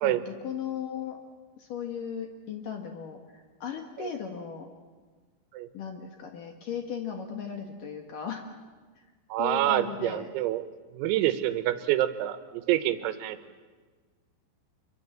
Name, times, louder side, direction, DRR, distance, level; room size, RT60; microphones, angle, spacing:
voice 1, 0.0-1.2 1.6-4.7 5.7-8.4 9.0-9.1 9.4-10.3, left 7 dB, 60° left, 4 dB, 2.3 m, -37 dB
voice 2, 9.3-10.6 10.9-13.4, right 13 dB, 90° right, 10 dB, 3.9 m, -27 dB
26.5 x 23.5 x 7.5 m, 1.4 s
omnidirectional pair, 6.0 m